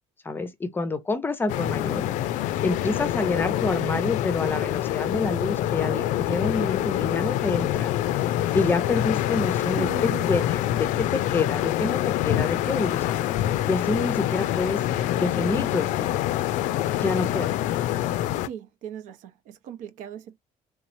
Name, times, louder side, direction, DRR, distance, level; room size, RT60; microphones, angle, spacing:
voice 1, 0.2-2.1 2.6-8.2 8.5-10.5 10.8-12.0 12.2-13.2 13.7-14.8 15.2-16.2 17.0-17.5, left 3 dB, 15° left, 0.6 m, -27 dB
sound 1, 1.5-18.5, left 13 dB, 65° left, 0.4 m, -26 dB
voice 2, 9.8-10.3 17.6-17.7 18.4-20.4, right 9 dB, 65° right, 0.8 m, -38 dB
3.7 x 3.1 x 2.6 m
cardioid pair, 170°, 14 cm